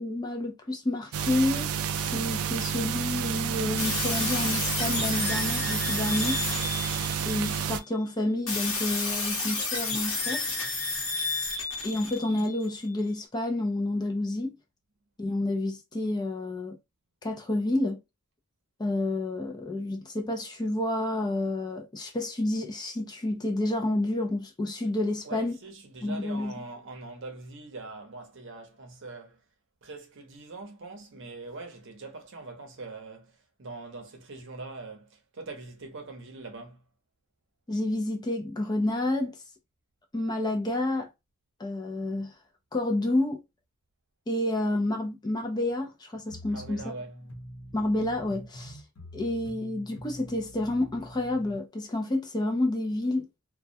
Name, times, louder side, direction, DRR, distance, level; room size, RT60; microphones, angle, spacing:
voice 1, 0.0-6.4 7.3-10.5 11.8-14.5 15.2-16.8 17.2-18.0 18.8-25.6 26.0-26.5 37.7-39.4 40.1-41.1 41.6-42.3 42.7-43.4 44.3-46.9 47.7-48.8 49.1-53.3, left 1 dB, 20° left, 0.4 m, -29 dB
sound 1, 1.1-7.8, right 7 dB, 70° right, 0.3 m, -30 dB
sound 2, 3.8-7.6 8.5-12.7, left 3 dB, 60° left, 0.9 m, -31 dB
voice 2, 10.9-12.0 25.2-29.4 29.8-36.9 46.5-47.2, right 3 dB, 55° right, 0.7 m, -43 dB
sound 3, 46.3-51.6, equal, 85° left, 0.8 m, -45 dB
2.2 x 2.1 x 2.6 m
head